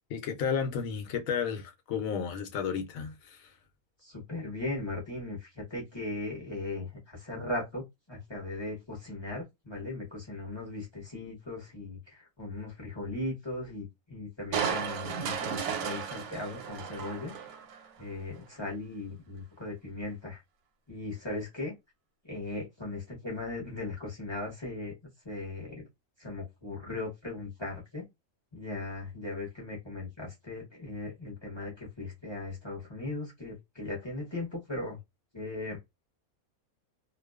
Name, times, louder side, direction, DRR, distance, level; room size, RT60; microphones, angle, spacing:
voice 1, 0.1-3.5, left 7 dB, 70° left, 1.0 m, -32 dB
voice 2, 4.0-17.3 18.0-20.4 20.9-21.7 22.3-24.9 25.2-25.9 26.2-28.0 28.5-35.0 35.3-35.8, left 2 dB, 25° left, 0.7 m, -38 dB
Crushing, 14.5-17.9 18.3-18.4, right 7 dB, 90° right, 1.1 m, -34 dB
2.6 x 2.1 x 2.2 m
omnidirectional pair, 1.5 m